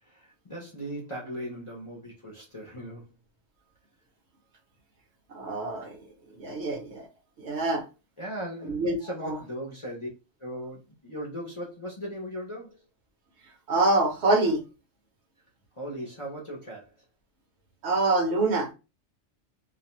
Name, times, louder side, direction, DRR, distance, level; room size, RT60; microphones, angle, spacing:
voice 1, 0.0-3.1 8.2-10.1 10.4-12.8 15.7-17.0, equal, 35° left, 0.5 m, -38 dB
voice 2, 5.3-6.0 6.4-7.1 7.4-7.8 8.6-9.0 9.2-9.4 13.7-14.6 17.8-18.7, right 2 dB, 65° right, 1.0 m, -25 dB
2.4 x 2.1 x 2.8 m
omnidirectional pair, 1.2 m